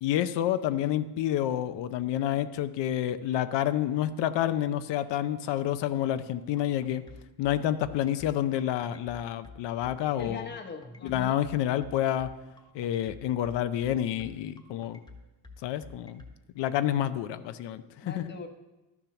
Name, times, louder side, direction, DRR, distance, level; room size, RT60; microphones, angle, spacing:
voice 1, 0.0-7.0 7.4-10.5 11.0-12.3 12.7-15.0 15.6-16.2 16.6-18.3, left 11 dB, 85° left, 11 dB, 0.7 m, -29 dB
sound 1, 6.6-16.3, left 3 dB, 10° left, 1.2 m, -48 dB
voice 2, 10.2-11.4 18.0-18.5, left 4 dB, 25° left, 5 dB, 0.9 m, -40 dB
11.5 x 7.3 x 5.8 m, 1.0 s
cardioid pair, 130°, 41 cm